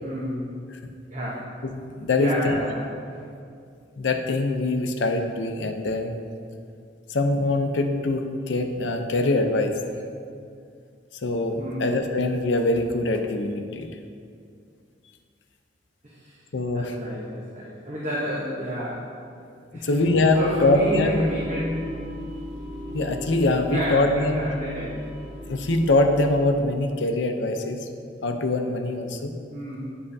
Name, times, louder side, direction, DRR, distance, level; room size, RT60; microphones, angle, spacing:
voice 1, 0.0-0.4 1.1-1.5 2.1-3.2 11.6-11.9 16.0-16.4 16.7-19.1 19.7-19.9 20.3-21.9 23.7-24.9 29.5-29.8, equal, 40° right, -6 dB, 0.9 m, -30 dB
voice 2, 1.6-2.6 4.0-6.2 7.1-9.7 11.2-13.9 16.5-16.9 19.8-21.2 22.9-24.5 25.5-27.9 28.2-29.3, left 2 dB, 75° left, 5 dB, 0.6 m, -23 dB
sound 1, 20.0-26.4, left 1 dB, 65° right, 1.0 m, -37 dB
9.6 x 5.5 x 2.7 m, 2.4 s
head